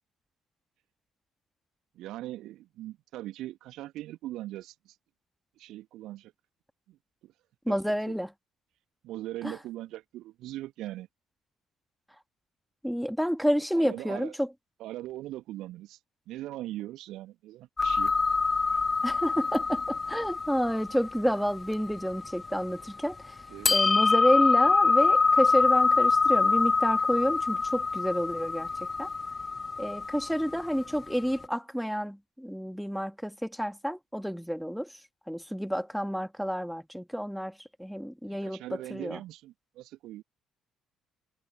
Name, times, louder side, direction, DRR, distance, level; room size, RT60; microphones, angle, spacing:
voice 1, 1.9-5.0 5.6-6.3 6.9-7.0 7.2-7.3 7.7-8.1 9.0-11.1 13.7-14.3 14.8-16.0 16.3-18.1 23.5-23.9 30.5-30.6 38.3-40.2, right 15 dB, 60° right, 2.3 m, -40 dB
voice 2, 7.7-8.3 9.4-9.6 12.8-14.5 19.0-23.4 23.7-29.1 29.8-34.9 35.3-38.6 38.9-39.2, equal, ahead, 1.8 m, -29 dB
sound 1, 17.8-23.0 23.7-31.1, left 4 dB, 25° left, 0.5 m, -25 dB
figure-of-eight pair, 45°, 0 cm